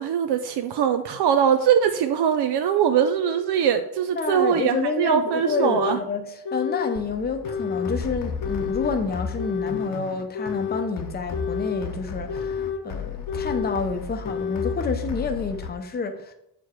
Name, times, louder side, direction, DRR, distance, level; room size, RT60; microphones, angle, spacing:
voice 1, 0.0-6.0, right 8 dB, 80° right, 0.6 m, -22 dB
sound 1, 3.3-3.4 4.3-4.4 5.3-6.0 6.4-7.0 7.4-8.0 8.4-9.0 9.4-9.9 10.3-10.9 11.3-11.9 12.3-12.8 13.3-13.8 14.2-14.8, left 6 dB, 80° left, 1.2 m, -30 dB
voice 2, 4.2-16.3, left 4 dB, 25° left, 0.7 m, -29 dB
sound 2, 7.0-15.7, left 5 dB, 55° left, 0.9 m, -34 dB
7.7 x 4.8 x 4.5 m
wide cardioid pair, 170°, 40 cm